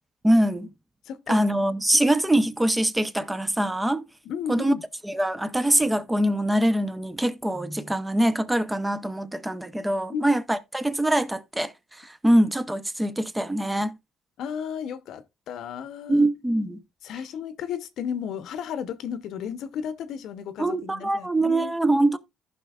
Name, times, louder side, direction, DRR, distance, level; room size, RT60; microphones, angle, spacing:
voice 1, 0.2-0.7 1.3-4.0 4.5-4.7 5.1-11.7 12.2-13.9 16.1-16.8 20.6-22.2, right 1 dB, 10° right, 0.7 m, -23 dB
voice 2, 1.1-1.4 4.2-4.8 10.1-10.3 14.4-16.2 17.0-21.7, left 7 dB, 70° left, 0.8 m, -33 dB
15.0 x 5.7 x 2.4 m
cardioid pair, 115°, 0 cm